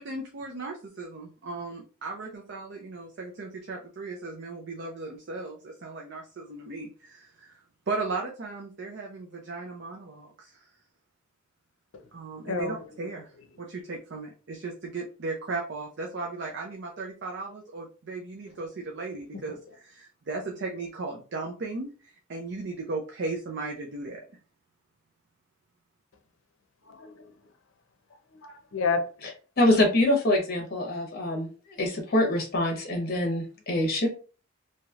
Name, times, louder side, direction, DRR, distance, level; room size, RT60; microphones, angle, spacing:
voice 1, 0.0-7.6 7.9-10.5 12.1-13.3 13.6-19.6 19.8-21.9 22.3-24.2, right 3 dB, 60° right, 0.5 m, -36 dB
voice 2, 12.4-13.2 19.3-19.8 26.8-27.3 28.4-29.3, left 4 dB, 80° left, 0.6 m, -32 dB
voice 3, 29.6-31.5 31.8-34.1, left 1 dB, 50° left, 1.0 m, -24 dB
3.1 x 2.8 x 2.4 m
head